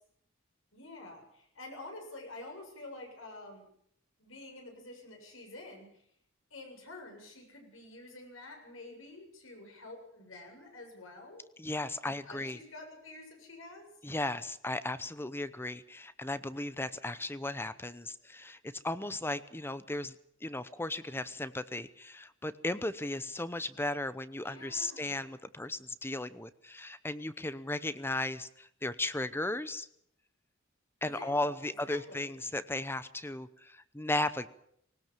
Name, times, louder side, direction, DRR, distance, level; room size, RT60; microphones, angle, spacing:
voice 1, 0.7-3.7 4.2-6.0 6.5-11.5 12.0-13.9 24.4-25.3 31.0-32.3, left 2 dB, 80° left, 3 dB, 7.5 m, -48 dB
voice 2, 11.6-12.6 14.0-18.6 18.8-20.1 20.4-29.9 31.0-34.5, left 2 dB, 10° left, 14 dB, 0.8 m, -36 dB
20.0 x 19.0 x 7.5 m, 0.69 s
head